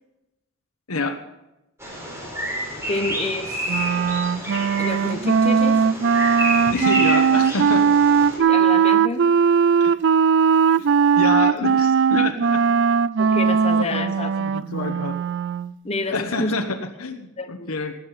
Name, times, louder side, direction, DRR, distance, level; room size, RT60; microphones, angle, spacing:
Bird vocalization bird call bird song, 1.8-8.4, equal, 15° right, 4.3 m, -29 dB
voice 1, 2.9-3.7 4.0-4.1 4.8-5.8 8.3-9.2 13.2-14.3 15.8-16.5 17.4-17.7, left 2 dB, 30° left, 6 dB, 1.2 m, -29 dB
Wind instrument woodwind instrument, 3.7-15.7, right 6 dB, 55° right, 0.4 m, -19 dB
voice 2, 6.7-7.9 9.8-9.9 10.8-10.9 11.2-12.8 13.2-13.4 13.7-15.2 16.1-17.9, left 3 dB, 80° left, 5 dB, 1.2 m, -28 dB
18.0 x 9.0 x 5.7 m, 0.94 s
head